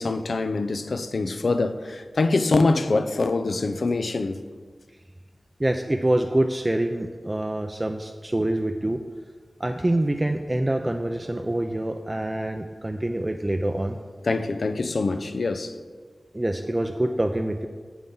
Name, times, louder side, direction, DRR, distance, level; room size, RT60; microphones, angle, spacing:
voice 1, 0.0-4.4 14.2-15.7, left 3 dB, 75° left, 9 dB, 0.5 m, -24 dB
voice 2, 5.6-9.0 9.6-14.0 16.3-17.7, right 1 dB, 25° right, 5 dB, 0.4 m, -25 dB
9.2 x 7.0 x 3.9 m, 1.6 s
wide cardioid pair, 65°, 0 cm